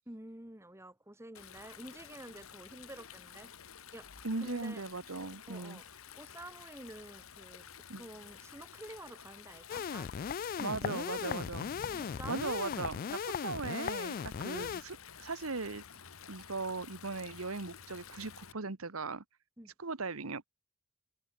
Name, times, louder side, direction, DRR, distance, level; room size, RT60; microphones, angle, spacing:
voice 1, 0.1-3.5 3.9-4.1 4.4-4.8 5.2-5.8 6.1-7.7 8.0-10.1 10.5-11.5 11.9-12.4 14.2-14.4 19.6-19.7, right 1 dB, 10° right, 1.8 m, -50 dB
Stream, 1.3-18.5, left 8 dB, 75° left, 1.4 m, -52 dB
voice 2, 4.2-5.8 7.9-8.0 10.6-11.7 12.3-15.8 16.3-19.2 19.8-20.5, right 3 dB, 85° right, 1.5 m, -38 dB
sound 1, 9.7-14.8, left 7 dB, 40° left, 0.3 m, -37 dB
open air
head